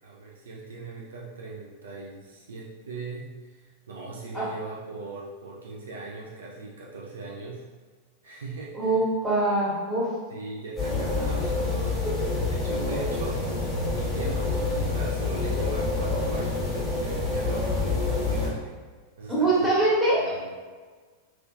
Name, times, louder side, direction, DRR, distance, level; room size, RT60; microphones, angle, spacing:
voice 1, 0.0-7.6 8.2-9.1 10.3-13.4 13.8-18.7 19.2-19.7 20.1-20.6, right 3 dB, 65° right, -3 dB, 0.5 m, -40 dB
voice 2, 8.7-10.1 19.3-20.3, right 2 dB, 5° right, -8 dB, 1.3 m, -23 dB
sound 1, 10.8-18.5, left 3 dB, 10° left, 1.4 m, -27 dB
3.1 x 3.0 x 2.5 m, 1.5 s
figure-of-eight pair, 90°, 0 cm